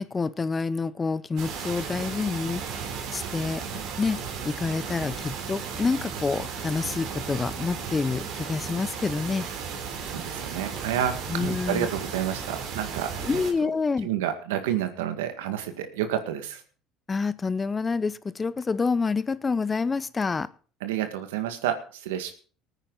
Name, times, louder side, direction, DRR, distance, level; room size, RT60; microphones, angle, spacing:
voice 1, 0.0-2.6 3.1-3.6 4.0-9.5 11.3-11.9 13.2-14.1 17.1-20.5, left 4 dB, 25° left, 0.7 m, -27 dB
sound 1, 1.4-13.5, right 6 dB, 65° right, 3.5 m, -35 dB
voice 2, 10.0-13.7 14.0-16.6 20.8-22.3, right 10 dB, 90° right, 1.8 m, -30 dB
19.5 x 9.1 x 4.0 m
supercardioid pair, 85°, 0 cm